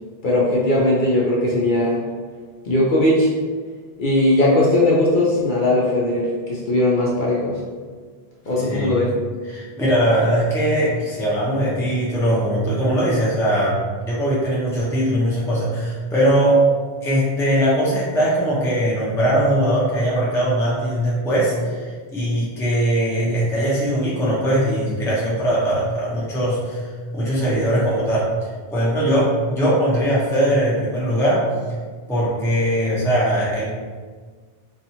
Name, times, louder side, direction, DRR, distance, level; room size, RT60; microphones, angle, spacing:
voice 1, 0.2-2.0 2.7-3.3 4.0-7.6 8.5-9.1, left 1 dB, 60° left, -5 dB, 0.6 m, -18 dB
voice 2, 8.7-9.1 9.5-13.8 14.0-16.6 17.0-26.8 27.1-28.3 28.7-31.4 32.1-33.7, right 1 dB, 5° left, -7 dB, 0.4 m, -20 dB
2.8 x 2.3 x 2.7 m, 1.5 s
omnidirectional pair, 1.1 m